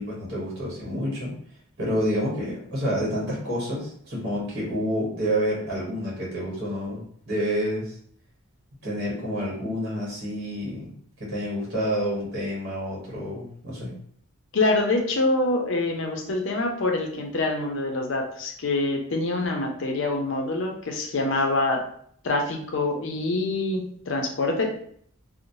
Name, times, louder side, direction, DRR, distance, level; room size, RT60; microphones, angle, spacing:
voice 1, 0.0-1.3 1.8-8.0 8.8-13.9, equal, 50° right, -5 dB, 1.1 m, -29 dB
voice 2, 14.5-21.8 22.2-24.7, left 2 dB, 60° left, 3 dB, 0.5 m, -25 dB
3.0 x 2.0 x 2.6 m, 0.62 s
head